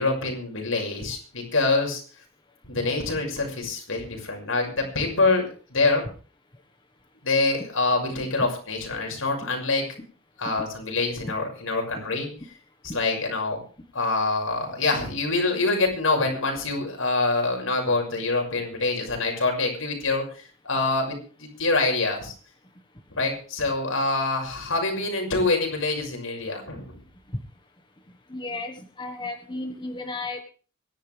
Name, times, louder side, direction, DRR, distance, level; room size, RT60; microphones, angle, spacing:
voice 1, 0.0-2.0 2.6-5.4 5.7-6.0 7.2-9.8 10.4-12.3 12.8-13.6 13.9-22.3 23.1-26.9, left 3 dB, 80° left, 1 dB, 6.3 m, -25 dB
voice 2, 28.3-30.4, left 2 dB, 20° left, 4 dB, 1.5 m, -33 dB
25.0 x 11.5 x 3.5 m, 0.39 s
head